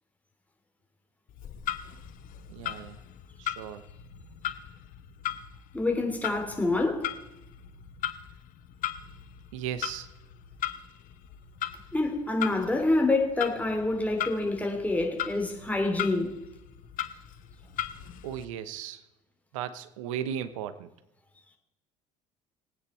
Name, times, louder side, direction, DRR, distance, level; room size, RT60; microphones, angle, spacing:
Clock, 1.3-18.4, left 11 dB, 55° left, 1.0 m, -38 dB
voice 1, 2.5-3.0 3.4-3.8 9.5-10.1 18.2-19.0 19.5-20.9, right 10 dB, 80° right, 0.9 m, -36 dB
voice 2, 5.7-7.1 11.9-16.3, left 2 dB, 10° left, 3.2 m, -27 dB
20.0 x 9.3 x 4.4 m
hypercardioid pair, 60°, 16 cm